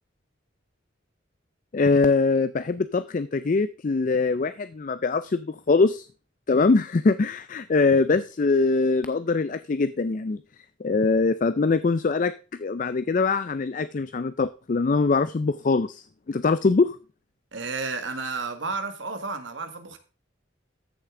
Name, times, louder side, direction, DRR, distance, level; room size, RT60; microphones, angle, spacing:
voice 1, 1.7-6.1 6.5-10.4 10.8-12.3 12.6-17.0, left 3 dB, 40° left, 14 dB, 0.4 m, -23 dB
voice 2, 17.5-20.0, right 4 dB, 75° right, 7 dB, 1.7 m, -32 dB
14.0 x 6.8 x 3.7 m, 0.34 s
head